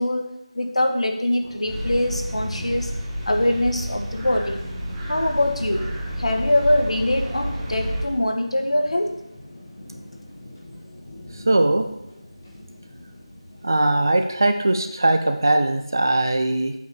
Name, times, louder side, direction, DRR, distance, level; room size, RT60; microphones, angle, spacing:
voice 1, 0.0-2.9 3.2-4.6 5.1-5.9 6.2-9.2, left 1 dB, 75° left, 4 dB, 1.5 m, -23 dB
sound 1, 1.4-15.0, left 1 dB, 20° left, 1.4 m, -45 dB
sound 2, 1.6-8.0, equal, 5° right, 0.7 m, -30 dB
voice 2, 11.3-11.9 13.6-16.7, right 2 dB, 35° right, 7 dB, 0.7 m, -20 dB
8.2 x 4.7 x 6.9 m, 0.85 s
figure-of-eight pair, 180°, 3 cm